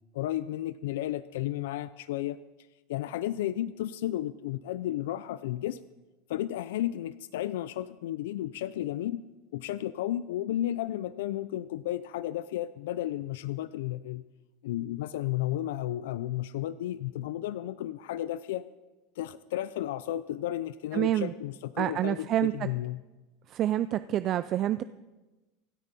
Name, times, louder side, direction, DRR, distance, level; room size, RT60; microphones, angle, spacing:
voice 1, 0.1-2.4 2.9-5.8 6.3-9.2 9.5-14.2 14.6-18.6 19.2-23.0, left 13 dB, 85° left, 15 dB, 0.4 m, -33 dB
voice 2, 20.9-21.3 21.8-22.5 23.5-24.8, right 13 dB, 35° right, 13 dB, 0.4 m, -27 dB
25.5 x 8.9 x 4.2 m, 1.1 s
supercardioid pair, 140°, 0 cm